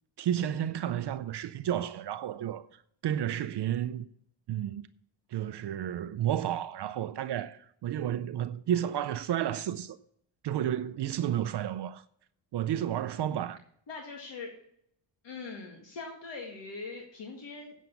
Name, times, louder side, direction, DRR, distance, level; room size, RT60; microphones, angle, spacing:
voice 1, 0.2-4.1 4.5-4.8 5.3-10.0 10.4-12.0 12.5-13.6, right 10 dB, 60° right, 0.6 m, -31 dB
voice 2, 13.9-14.5 15.2-17.7, left 4 dB, 60° left, 2.0 m, -41 dB
8.3 x 7.7 x 7.0 m
cardioid pair, 115°, 47 cm